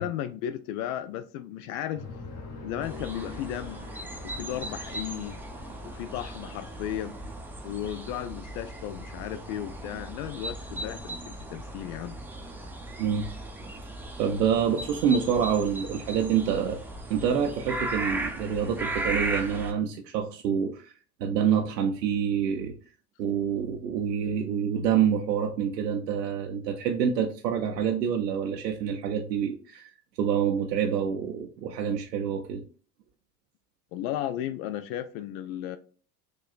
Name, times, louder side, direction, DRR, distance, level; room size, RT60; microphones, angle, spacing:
voice 1, 0.0-2.0 2.6-3.8 4.2-5.4 5.8-7.2 7.6-12.2 33.9-35.8, left 11 dB, 60° left, 0.5 m, -35 dB
sound 1, 2.0-12.0 12.3-12.4 12.8-13.2 13.5-13.6 13.9-14.0 14.6-14.8 15.3-15.4, left 4 dB, 35° left, 1.2 m, -46 dB
sound 2, 2.8-19.7, right 2 dB, 5° right, 0.6 m, -37 dB
voice 2, 14.2-16.8 17.1-20.9 21.2-22.7 23.2-29.9 30.2-32.6, right 8 dB, 85° right, 0.6 m, -27 dB
6.3 x 2.3 x 2.4 m
hypercardioid pair, 70°, 48 cm